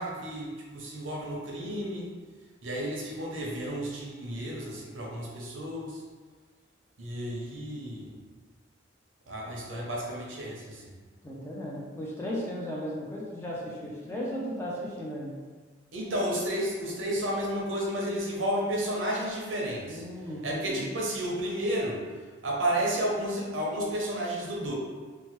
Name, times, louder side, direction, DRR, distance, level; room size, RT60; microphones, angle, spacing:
voice 1, 0.0-2.1 2.6-6.0 7.0-8.2 9.3-10.9 15.9-20.0 20.4-22.0 22.4-24.7, right 1 dB, 80° right, -3 dB, 0.7 m, -32 dB
voice 2, 11.2-15.3 19.9-20.8, equal, 15° left, -5 dB, 0.4 m, -36 dB
3.0 x 2.1 x 3.0 m, 1.4 s
head